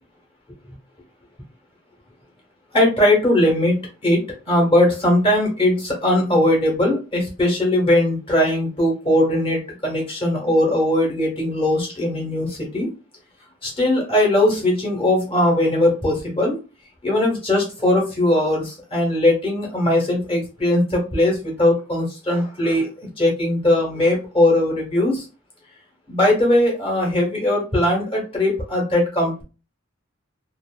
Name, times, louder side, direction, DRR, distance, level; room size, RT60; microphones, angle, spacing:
voice 1, 2.7-4.2 4.5-12.9 13.6-16.6 17.0-22.9 23.2-25.2 26.1-29.4, left 1 dB, 30° left, -1 dB, 1.2 m, -19 dB
2.7 x 2.5 x 2.2 m, 0.32 s
head